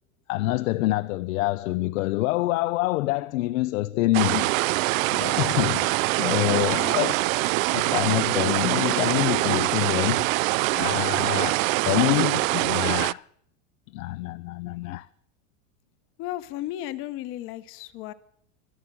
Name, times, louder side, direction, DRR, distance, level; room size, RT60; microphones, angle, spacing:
voice 1, 0.3-4.5 5.1-7.2 7.7-10.3 10.7-13.2 13.9-15.1, left 17 dB, 85° left, 0.7 m, -26 dB
sound 1, 4.1-13.1, right 21 dB, 80° right, 0.5 m, -24 dB
voice 2, 6.4-7.1 16.2-18.1, left 14 dB, 35° left, 0.8 m, -34 dB
24.5 x 8.6 x 6.1 m
supercardioid pair, 170°, 40 cm